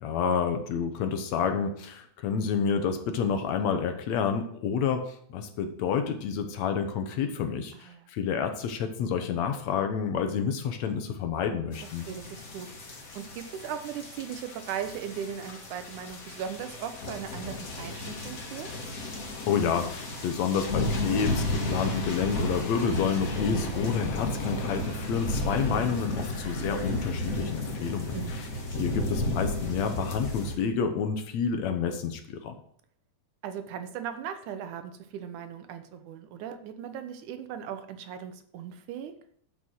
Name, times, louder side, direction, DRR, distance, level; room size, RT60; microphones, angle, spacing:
voice 1, 0.0-12.1 19.5-28.5 28.8-32.5, left 6 dB, 70° left, 7 dB, 2.2 m, -29 dB
voice 2, 7.7-8.1 12.1-12.7 13.2-18.7 28.1-28.4 33.4-39.1, right 8 dB, 80° right, 9 dB, 2.3 m, -38 dB
sound 1, 11.7-30.5, left 1 dB, 40° left, 1.4 m, -33 dB
11.0 x 5.6 x 6.3 m, 0.64 s
omnidirectional pair, 3.5 m